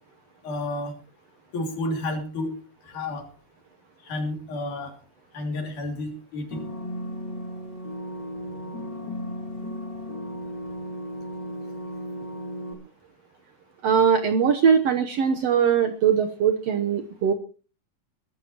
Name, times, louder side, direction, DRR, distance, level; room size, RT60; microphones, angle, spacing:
voice 1, 0.4-0.9 1.5-2.5 2.9-3.3 4.0-5.0 5.3-6.6, left 2 dB, 65° left, 4 dB, 4.3 m, -31 dB
sound 1, 6.5-12.7, equal, 30° left, 3.7 m, -35 dB
voice 2, 13.8-17.3, right 7 dB, 65° right, 7 dB, 1.7 m, -21 dB
22.0 x 13.0 x 3.0 m, 0.36 s
omnidirectional pair, 3.8 m